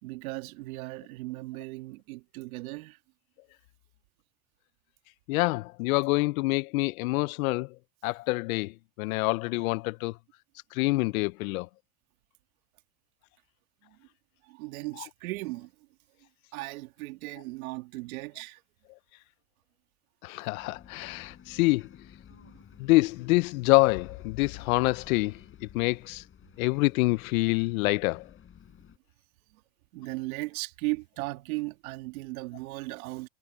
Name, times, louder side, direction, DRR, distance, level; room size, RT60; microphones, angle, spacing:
voice 1, 0.0-3.0 13.8-14.1 14.5-15.7 16.5-18.6 22.3-22.5 29.9-33.3, right 22 dB, 75° right, 2.4 m, -37 dB
voice 2, 5.3-7.7 8.0-10.1 10.7-11.7 20.2-21.8 22.8-26.2 26.6-28.3, left 22 dB, 75° left, 0.6 m, -26 dB
Bus, 20.6-29.0, left 8 dB, 30° left, 4.1 m, -52 dB
supercardioid pair, 120°, 42 cm